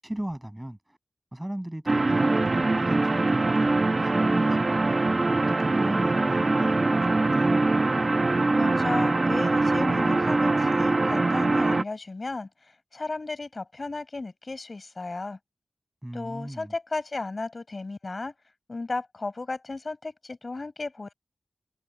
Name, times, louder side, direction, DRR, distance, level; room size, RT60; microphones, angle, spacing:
voice 1, 0.0-1.0 1.3-5.0 5.3-7.6 16.0-16.7, right 1 dB, 10° right, 7.5 m, -37 dB
sound 1, 1.9-11.8, right 2 dB, 40° right, 1.0 m, -23 dB
voice 2, 8.6-15.4 16.1-18.3 18.7-21.1, left 3 dB, 45° left, 6.5 m, -34 dB
wide cardioid pair, 90°, 0 cm